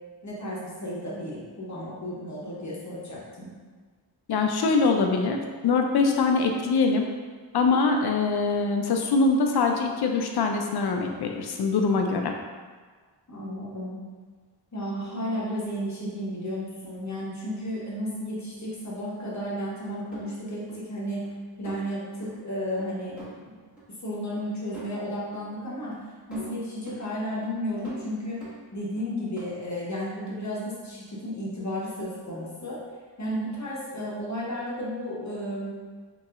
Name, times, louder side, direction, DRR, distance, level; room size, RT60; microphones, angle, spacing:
voice 1, 0.2-3.5 13.3-14.0 14.7-21.3 21.6-23.6 24.0-26.0 26.3-28.5 28.7-32.8 33.2-35.7, equal, 40° left, -6 dB, 0.9 m, -33 dB
voice 2, 4.3-5.4 5.6-7.1 7.5-12.3, left 4 dB, 60° left, 3 dB, 0.5 m, -23 dB
sound 1, 20.1-20.8 21.2-21.3 21.6-21.9 22.2-22.3 22.8-22.9 23.2-23.3 23.8-23.9 24.4-24.5 24.7-24.9 25.3-25.4 25.9-26.0 26.3-27.0 27.4-27.5 27.8-29.1 29.4-29.5, right 3 dB, ahead, 1.3 m, -44 dB
3.0 x 2.7 x 2.4 m, 1.5 s
cardioid pair, 55°, 44 cm